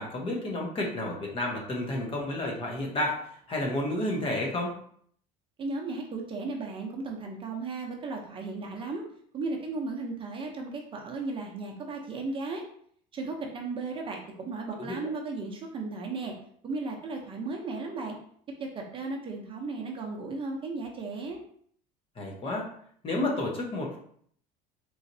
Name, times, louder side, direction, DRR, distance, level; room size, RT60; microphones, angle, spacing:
voice 1, 0.0-3.2 3.5-4.8 14.8-15.0 22.2-22.7 23.0-24.0, left 1 dB, 35° left, -1 dB, 1.0 m, -31 dB
voice 2, 5.6-9.0 9.3-12.6 13.1-16.3 16.6-18.2 18.6-21.4, right 3 dB, 30° right, 1 dB, 0.7 m, -35 dB
3.9 x 3.1 x 2.7 m, 0.62 s
cardioid pair, 130°, 17 cm